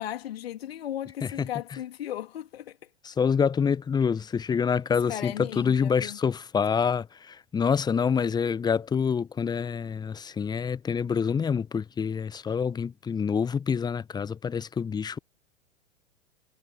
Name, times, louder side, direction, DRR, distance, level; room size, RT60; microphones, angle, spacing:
voice 1, 0.0-2.8 5.1-6.2, left 11 dB, 55° left, 2.8 m, -36 dB
voice 2, 3.0-15.2, left 6 dB, 10° left, 1.1 m, -27 dB
figure-of-eight pair, 100°, 36 cm